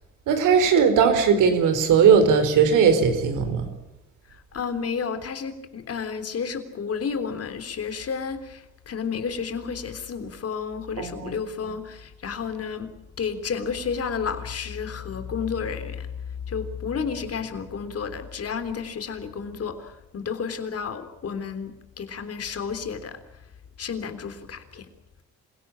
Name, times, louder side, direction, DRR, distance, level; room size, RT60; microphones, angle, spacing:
voice 1, 0.3-3.7 11.0-11.3, right 6 dB, 85° right, 8 dB, 4.5 m, -18 dB
voice 2, 4.3-23.5 23.8-24.9, left 6 dB, 50° left, 9 dB, 3.5 m, -31 dB
27.0 x 17.5 x 8.8 m, 0.91 s
cardioid pair, 90°, 30 cm